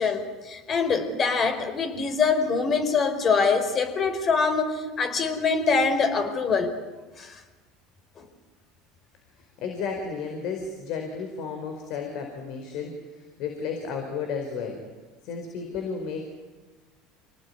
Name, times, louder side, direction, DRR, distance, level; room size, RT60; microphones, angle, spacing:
voice 1, 0.0-6.7 7.2-7.4 8.2-8.3, left 5 dB, 40° left, 7 dB, 4.7 m, -24 dB
voice 2, 9.6-14.8 15.2-16.3, left 5 dB, 65° left, 4 dB, 4.6 m, -33 dB
27.0 x 19.0 x 9.9 m, 1.3 s
supercardioid pair, 100°, 0 cm